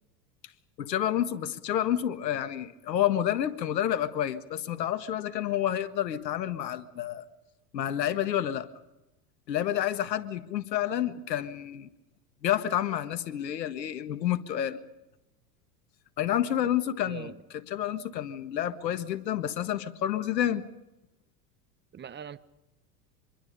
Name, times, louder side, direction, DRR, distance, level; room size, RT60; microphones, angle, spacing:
voice 1, 0.8-7.3 7.7-8.7 9.5-11.9 12.4-14.8 16.2-17.3 17.7-20.6, left 11 dB, 85° left, 1.7 m, -29 dB
voice 2, 17.1-17.4 21.9-22.4, right 8 dB, 20° right, 1.1 m, -41 dB
26.0 x 22.5 x 5.5 m
hypercardioid pair, 100°, 49 cm